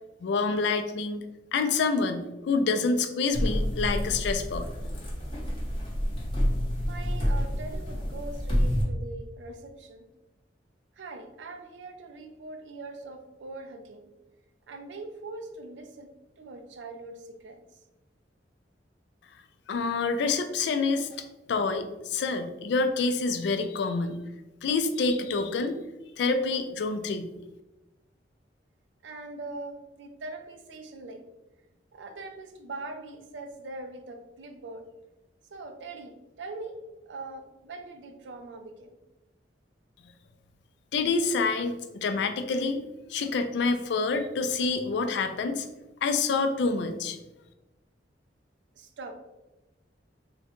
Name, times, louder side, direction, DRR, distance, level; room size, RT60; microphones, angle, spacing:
voice 1, 0.2-1.3 1.5-4.7 19.7-21.1 21.5-24.2 24.6-25.8 26.2-27.3 40.9-42.8 43.1-45.7 46.0-47.2, left 4 dB, 70° left, 7 dB, 0.3 m, -27 dB
sound 1, 3.3-8.8, equal, 30° left, 0.8 m, -28 dB
voice 2, 6.8-10.1 10.9-14.1 14.7-17.6 29.0-31.2 31.9-34.8 35.5-36.8 37.1-38.9 48.7-49.1, right 2 dB, 80° right, 6 dB, 0.4 m, -42 dB
3.6 x 2.1 x 2.9 m, 1.0 s
head